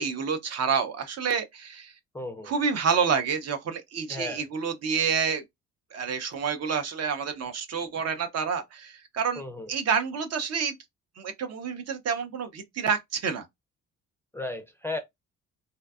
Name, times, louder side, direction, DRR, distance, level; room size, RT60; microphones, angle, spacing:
voice 1, 0.0-1.9 2.5-5.4 5.9-9.4 9.7-10.8 11.2-13.5, right 6 dB, 55° right, 0.6 m, -28 dB
voice 2, 2.1-2.5 4.1-4.4 9.4-9.7 14.3-15.0, left 2 dB, 10° left, 0.4 m, -34 dB
2.6 x 2.1 x 2.3 m
cardioid pair, 90°, 30 cm